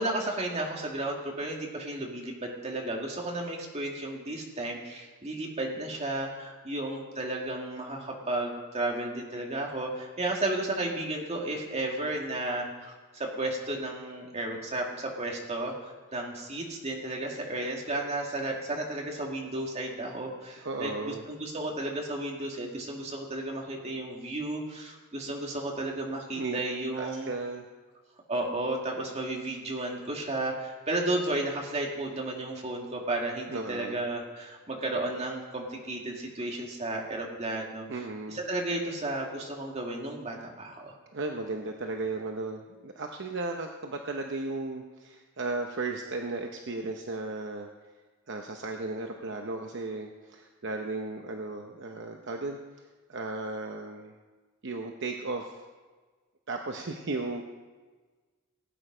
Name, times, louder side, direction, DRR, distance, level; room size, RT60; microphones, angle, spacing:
voice 1, 0.0-27.3 28.3-40.9, right 2 dB, 30° right, 0 dB, 2.1 m, -33 dB
voice 2, 20.6-21.3 26.3-26.6 27.0-27.6 33.5-34.0 37.9-38.4 41.1-47.7 48.3-52.6 53.1-54.1 54.6-55.6 56.5-57.4, right 3 dB, 55° right, 3 dB, 0.8 m, -35 dB
17.5 x 8.8 x 5.0 m, 1.3 s
head